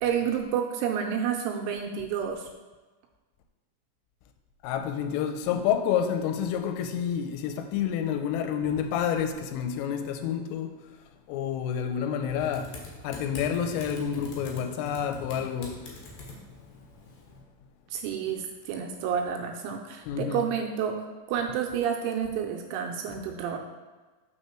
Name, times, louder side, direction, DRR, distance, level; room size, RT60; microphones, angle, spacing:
voice 1, 0.0-2.5 17.9-23.6, right 8 dB, 85° right, 2.9 m, -30 dB
voice 2, 4.6-10.8 11.3-15.8 20.1-20.5, left 8 dB, 85° left, 3.2 m, -29 dB
Typing, 12.4-17.4, left 2 dB, 70° left, 2.2 m, -44 dB
6.6 x 6.3 x 4.4 m
omnidirectional pair, 5.8 m